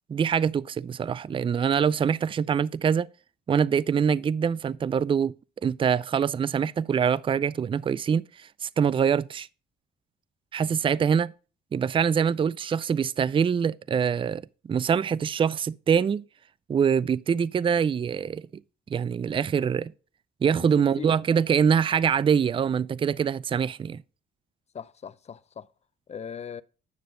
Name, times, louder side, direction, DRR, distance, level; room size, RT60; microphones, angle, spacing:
voice 1, 0.1-3.1 3.5-5.3 5.6-9.5 10.5-11.3 11.7-14.4 14.7-16.2 16.7-18.5 18.9-19.9 20.4-24.0, right 7 dB, 25° right, 0.4 m, -24 dB
voice 2, 20.6-21.2 24.7-25.7 26.1-26.6, left 7 dB, 35° left, 0.5 m, -39 dB
9.5 x 6.7 x 3.7 m
cardioid pair, 90°, 20 cm